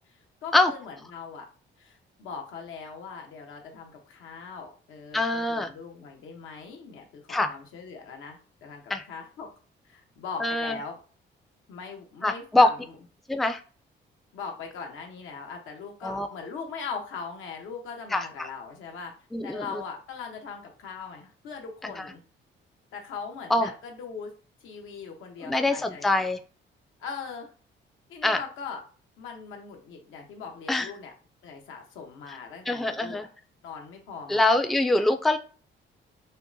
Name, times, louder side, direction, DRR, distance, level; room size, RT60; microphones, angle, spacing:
voice 1, 0.4-1.5 1.8-9.5 9.8-11.0 11.7-12.7 14.3-19.1 19.4-22.2 22.9-24.3 24.6-26.1 27.0-27.5 28.1-28.8 29.2-31.1 31.4-33.3 33.6-34.7 35.0-35.1, left 5 dB, 90° left, 2 dB, 1.0 m, -40 dB
voice 2, 5.1-5.7 7.3-7.5 8.9-9.0 10.4-10.8 12.2-12.7 13.3-13.6 16.0-16.3 18.1-18.5 19.3-19.8 21.8-22.1 23.5-23.7 25.4-26.4 28.2-28.4 30.7-30.9 32.7-33.3 34.3-35.4, left 2 dB, ahead, 8 dB, 0.4 m, -24 dB
5.5 x 2.1 x 2.6 m, 0.38 s
cardioid pair, 90°, 20 cm